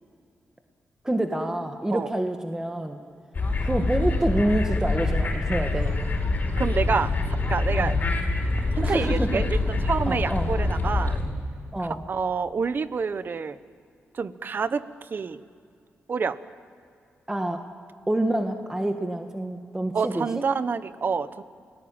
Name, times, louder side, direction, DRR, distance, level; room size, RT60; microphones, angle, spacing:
voice 1, 1.0-3.0 3.6-5.9 7.7-7.9 8.8-9.4 10.1-10.5 11.7-12.0 17.3-17.6 18.1-20.3, right 1 dB, 10° right, 5 dB, 1.5 m, -27 dB
sound 1, 3.3-11.2, left 2 dB, 45° left, 5.1 m, -25 dB
voice 2, 6.6-8.0 8.7-11.2 11.8-13.6 14.1-15.4 16.1-16.4 19.9-21.4, right 5 dB, 50° right, 13 dB, 1.0 m, -28 dB
30.0 x 19.0 x 8.9 m, 2.3 s
wide cardioid pair, 105°, 4 cm